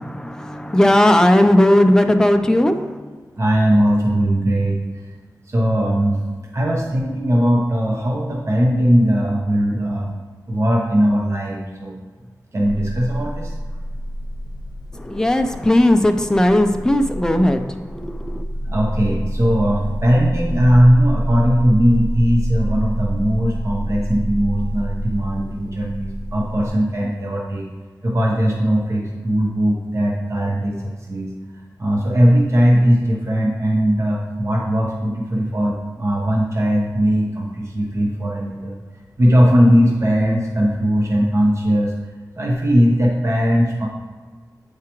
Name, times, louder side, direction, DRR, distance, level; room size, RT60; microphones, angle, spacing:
voice 1, 0.0-3.0 14.9-18.4, left 1 dB, 10° left, 6 dB, 0.5 m, -16 dB
voice 2, 3.4-4.8 5.5-6.2 6.5-10.1 10.5-12.0 12.5-13.5 18.6-27.7 28.0-31.3 31.8-38.8 39.2-41.9 42.4-43.9, equal, 45° right, -2 dB, 0.8 m, -18 dB
sound 1, 12.6-26.7, equal, 85° left, 0.7 m, -27 dB
8.5 x 4.7 x 3.0 m, 1.5 s
wide cardioid pair, 100°, 7 cm